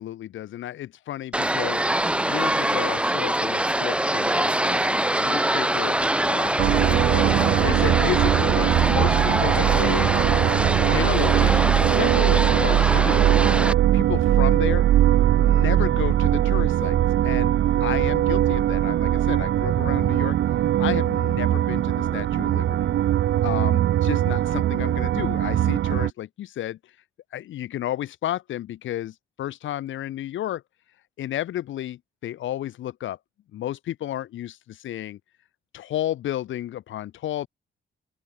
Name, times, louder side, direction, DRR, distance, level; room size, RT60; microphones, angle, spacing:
voice 1, 0.0-1.8 2.1-10.1 10.9-13.2 13.9-14.8 15.3-17.5 17.8-20.4 20.8-22.9 23.4-26.8 27.3-30.6 31.2-33.2 33.5-35.2 35.7-37.5, left 12 dB, 75° left, 2.4 m, -32 dB
sound 1, 1.3-13.7, right 1 dB, 5° right, 1.1 m, -24 dB
sound 2, 6.6-26.1, right 12 dB, 65° right, 0.9 m, -21 dB
open air
cardioid pair, 90°, 20 cm